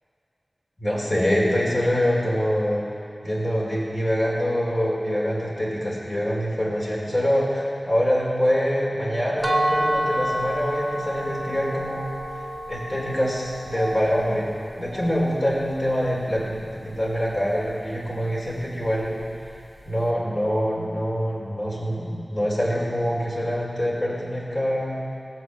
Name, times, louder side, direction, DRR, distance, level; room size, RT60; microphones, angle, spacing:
voice 1, 0.8-2.8 3.2-12.4 12.7-14.5 14.8-19.2 19.9-25.0, equal, 45° left, -6 dB, 4.4 m, -25 dB
sound 1, 9.4-15.2, right 1 dB, 20° right, 1.8 m, -29 dB
19.0 x 7.9 x 7.2 m, 2.6 s
wide cardioid pair, 50°, 0 cm